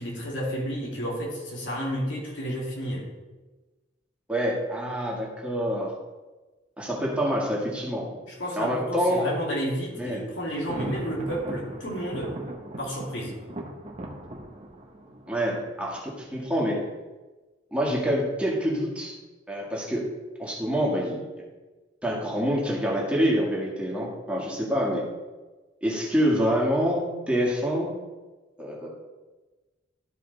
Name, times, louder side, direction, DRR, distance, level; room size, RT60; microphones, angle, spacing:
voice 1, 0.0-3.1 8.3-12.3 12.8-13.4, equal, 75° left, -3 dB, 2.5 m, -31 dB
voice 2, 4.3-5.9 6.8-8.2 8.6-9.3 10.0-10.2 15.3-16.8 17.7-19.1 19.5-20.1 20.4-21.2 22.0-25.0 25.8-27.9 28.6-28.9, equal, 5° right, -4 dB, 1.9 m, -26 dB
Thunder, 10.5-16.3, right 1 dB, 35° right, 1.0 m, -39 dB
12.5 x 5.0 x 4.0 m, 1.2 s
head